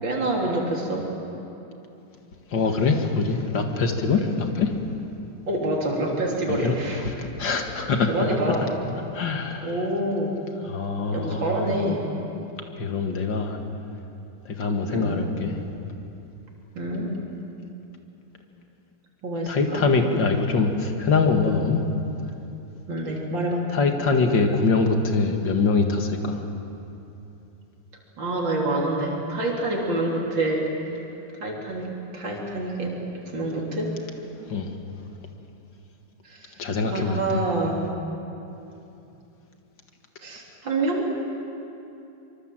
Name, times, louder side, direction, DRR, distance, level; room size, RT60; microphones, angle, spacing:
voice 1, 0.0-1.1 4.1-4.3 5.5-7.0 8.1-8.7 9.6-10.4 11.1-12.1 14.9-15.2 16.8-17.1 19.2-19.9 22.9-23.7 28.2-30.6 31.4-33.9 36.2-36.5 36.9-37.8 40.2-41.1, right 1 dB, 75° right, -2 dB, 4.0 m, -27 dB
voice 2, 2.5-4.7 6.5-6.7 7.0-8.1 9.1-9.8 10.7-11.5 12.8-13.6 14.5-15.6 19.5-21.8 23.7-26.4 34.5-34.8 36.6-37.2, left 4 dB, 70° left, 4 dB, 2.5 m, -23 dB
24.5 x 24.0 x 7.7 m, 2.8 s
omnidirectional pair, 2.0 m